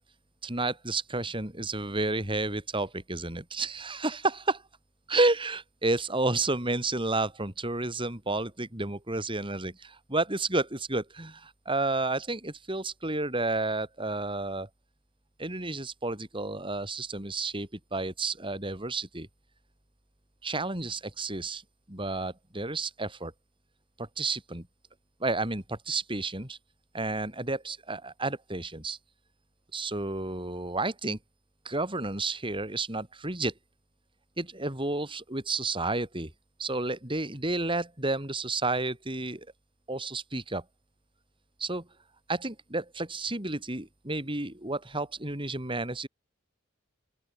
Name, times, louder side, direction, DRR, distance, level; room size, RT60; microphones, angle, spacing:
voice 1, 0.4-4.6 5.1-14.7 15.4-19.3 20.4-21.6 21.9-23.3 24.0-24.7 25.2-26.6 26.9-29.0 29.7-31.2 31.6-33.5 34.4-36.3 36.6-39.5 39.9-40.6 41.6-41.9 42.3-46.1, right 2 dB, 25° right, 4.6 m, -31 dB
open air
head